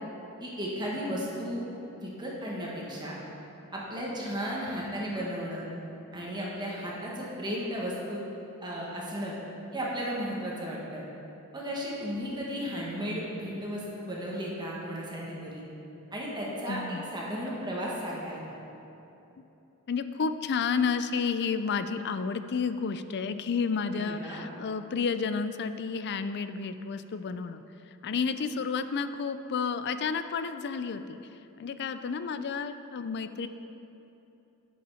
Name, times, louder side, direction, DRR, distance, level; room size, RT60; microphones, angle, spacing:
voice 1, 0.4-1.6 2.0-3.1 3.7-5.7 6.1-8.2 8.6-9.3 9.7-11.0 11.5-15.6 16.1-18.5 23.9-24.4, equal, 20° right, -5 dB, 1.6 m, -34 dB
voice 2, 16.7-17.0 19.4-19.5 19.9-27.6 28.0-31.2 31.6-33.5, left 5 dB, 50° left, 11 dB, 0.4 m, -31 dB
10.0 x 7.0 x 5.7 m, 2.9 s
head